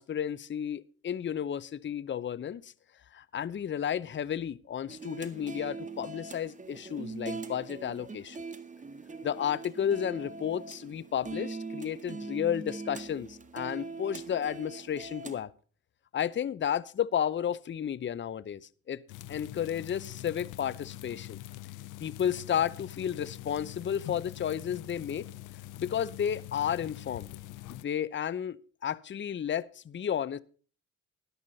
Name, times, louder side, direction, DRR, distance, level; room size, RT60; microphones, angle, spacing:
voice 1, 0.0-2.7 3.1-8.4 9.2-15.5 16.1-19.0 19.3-21.4 22.0-25.3 25.8-27.3 27.7-28.6 28.8-30.4, left 9 dB, 40° left, 0.8 m, -32 dB
sound 1, 4.9-15.4, right 4 dB, 25° right, 1.8 m, -42 dB
sound 2, 19.1-27.8, left 15 dB, 85° left, 0.7 m, -44 dB
13.5 x 11.5 x 4.0 m
cardioid pair, 90°, 30 cm